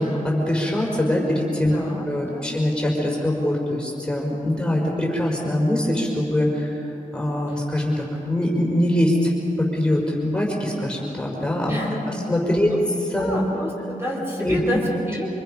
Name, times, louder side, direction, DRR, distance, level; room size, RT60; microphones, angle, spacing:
voice 1, 0.0-1.7 2.1-9.3 9.6-12.7 13.1-13.4 14.4-14.6, left 1 dB, 5° left, -2 dB, 5.0 m, -23 dB
voice 2, 1.7-2.5 7.5-7.6 11.7-12.2 12.6-12.8 13.2-15.3, left 1 dB, 15° right, -3 dB, 4.8 m, -29 dB
28.5 x 26.5 x 5.8 m, 2.9 s
wide cardioid pair, 130°, 14 cm